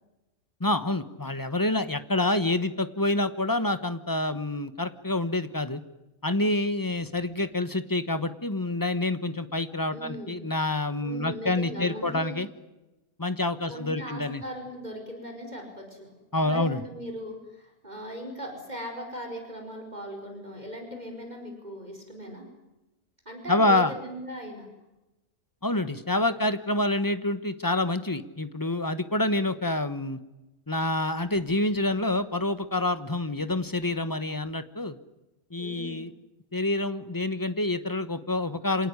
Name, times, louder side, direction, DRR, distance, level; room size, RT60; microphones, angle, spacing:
voice 1, 0.6-5.8 6.2-12.5 13.2-14.4 16.3-16.8 23.5-23.9 25.6-30.2 30.7-35.0 35.5-36.1 36.5-38.9, left 2 dB, 15° left, 12 dB, 1.1 m, -27 dB
voice 2, 9.9-10.4 11.0-12.4 13.7-22.5 23.3-24.7 35.6-36.0, equal, 30° right, 3 dB, 5.3 m, -39 dB
27.0 x 19.0 x 9.7 m, 1.0 s
omnidirectional pair, 1.6 m